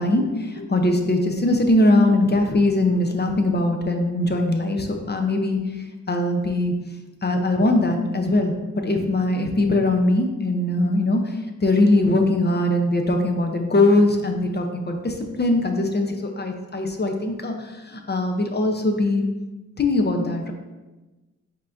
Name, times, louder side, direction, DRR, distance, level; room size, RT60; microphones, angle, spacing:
voice 1, 0.0-5.6 6.1-6.7 7.2-11.4 11.6-19.2 19.8-20.5, left 2 dB, 35° left, 4 dB, 0.7 m, -21 dB
5.4 x 3.8 x 2.5 m, 1.2 s
cardioid pair, 60°, 29 cm